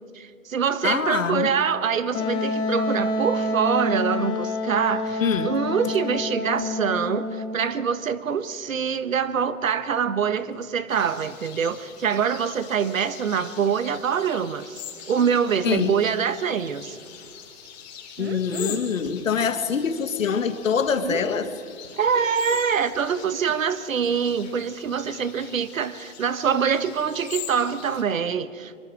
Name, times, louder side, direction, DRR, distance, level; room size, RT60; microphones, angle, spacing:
voice 1, 0.1-17.0 22.0-28.8, right 7 dB, 70° right, 13 dB, 1.4 m, -25 dB
voice 2, 0.8-1.5 5.2-5.5 15.6-15.9 18.2-21.5, left 6 dB, 70° left, 9 dB, 2.1 m, -24 dB
Wind instrument woodwind instrument, 2.1-7.7, left 2 dB, 10° left, 1.2 m, -27 dB
sound 1, 10.9-28.0, left 9 dB, 30° left, 3.9 m, -42 dB
sound 2, 15.2-15.6 15.9-16.7 17.1-17.3 18.1-19.3 19.5-23.6 24.0-24.3 24.5-24.6 24.8-24.9 25.5-25.6, right 7 dB, 50° right, 1.6 m, -38 dB
25.0 x 23.5 x 4.9 m, 2.4 s
hypercardioid pair, 160°, 41 cm